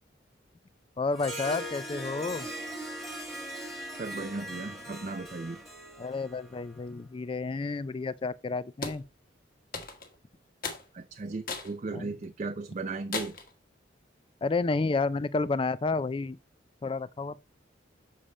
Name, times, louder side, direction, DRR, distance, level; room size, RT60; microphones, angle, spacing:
voice 1, 1.0-2.5 6.0-9.0 11.9-12.1 14.4-16.4 16.8-17.4, left 3 dB, 30° left, 0.3 m, -30 dB
Harp, 1.1-6.8, right 1 dB, ahead, 1.7 m, -40 dB
voice 2, 3.9-5.6 10.9-13.4, right 3 dB, 35° right, 0.4 m, -36 dB
sound 1, 8.8-9.0 9.7-10.1 10.6-10.8 11.5-11.7 12.2-12.3 13.1-13.5, left 4 dB, 50° left, 1.4 m, -36 dB
7.1 x 5.0 x 4.2 m
head